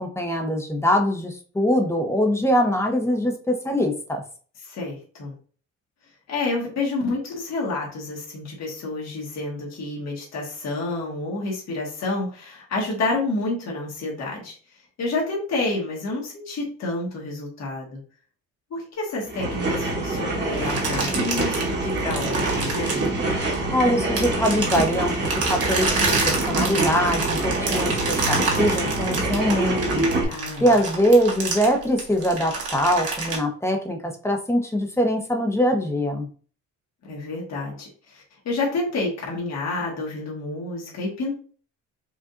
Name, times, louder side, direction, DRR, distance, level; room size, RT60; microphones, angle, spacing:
voice 1, 0.0-4.2 23.7-25.1 25.5-27.9 28.3-30.1 30.6-36.3, equal, 10° left, 3 dB, 0.9 m, -22 dB
voice 2, 4.6-5.3 6.3-14.6 15.0-18.0 18.7-23.1 30.3-30.7 37.0-41.3, left 2 dB, 60° left, -3 dB, 1.7 m, -29 dB
sound 1, 19.3-30.2, right 2 dB, 35° right, 1.3 m, -25 dB
sound 2, 20.5-23.7 24.2-33.4, right 4 dB, 50° right, 1.7 m, -28 dB
4.9 x 2.5 x 2.6 m, 0.41 s
cardioid pair, 90°, 30 cm